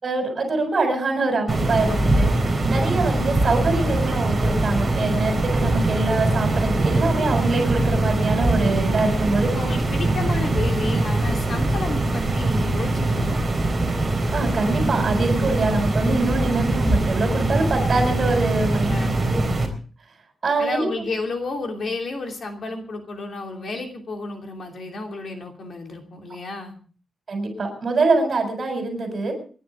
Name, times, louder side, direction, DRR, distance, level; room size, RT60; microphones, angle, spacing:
voice 1, 0.0-9.5 14.3-19.0 19.3-19.5 20.4-20.9 27.3-29.3, right 3 dB, 40° right, 3 dB, 7.1 m, -24 dB
sound 1, 1.5-19.7, right 2 dB, 20° right, 4.1 m, -22 dB
voice 2, 9.5-13.5 18.9-19.5 20.6-26.8, left 3 dB, 55° left, 3 dB, 2.9 m, -31 dB
27.5 x 11.5 x 3.8 m, 0.41 s
wide cardioid pair, 155°, 0 cm